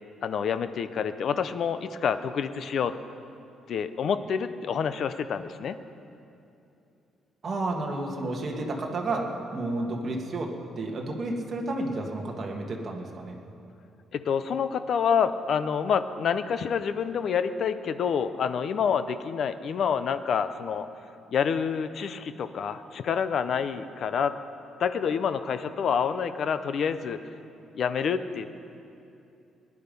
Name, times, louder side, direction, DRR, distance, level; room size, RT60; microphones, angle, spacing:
voice 1, 0.2-2.9 3.7-5.8 14.1-20.9 21.3-24.4 24.8-27.2 27.8-28.6, left 7 dB, 50° left, 11 dB, 0.6 m, -27 dB
voice 2, 7.4-13.4, right 2 dB, 30° right, 0 dB, 1.7 m, -31 dB
19.0 x 11.0 x 5.4 m, 2.7 s
cardioid pair, 160°, 0 cm